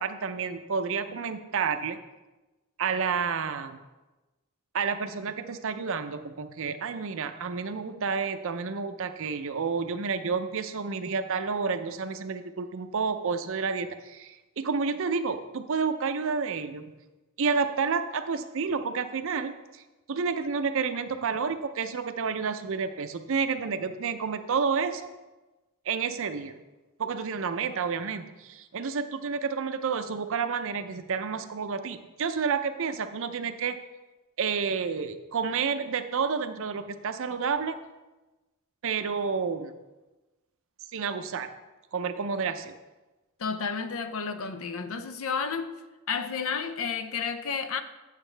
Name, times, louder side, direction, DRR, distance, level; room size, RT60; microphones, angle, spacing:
voice 1, 0.0-2.0 2.8-3.8 4.7-16.9 17.4-19.8 20.1-25.1 25.9-26.5 27.0-33.8 34.4-37.8 38.8-39.7 40.9-41.5 41.9-42.7, right 5 dB, 60° right, 0.6 m, -30 dB
voice 2, 43.4-45.7 46.1-47.8, left 5 dB, 65° left, 0.6 m, -31 dB
8.3 x 8.1 x 3.3 m
head